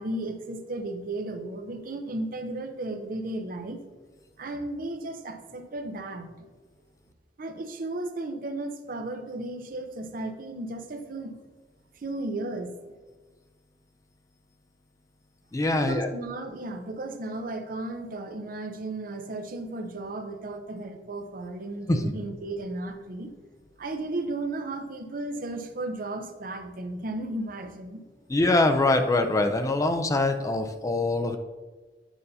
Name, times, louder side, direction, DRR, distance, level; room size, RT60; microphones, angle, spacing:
voice 1, 0.0-3.8 4.4-6.5 7.4-11.3 12.0-12.7 15.7-23.3 23.8-28.0, right 2 dB, 50° right, 7 dB, 0.6 m, -34 dB
voice 2, 15.5-16.1 21.9-22.1 28.3-31.4, left 2 dB, 20° left, 6 dB, 0.4 m, -23 dB
8.9 x 5.3 x 2.7 m, 1.3 s
head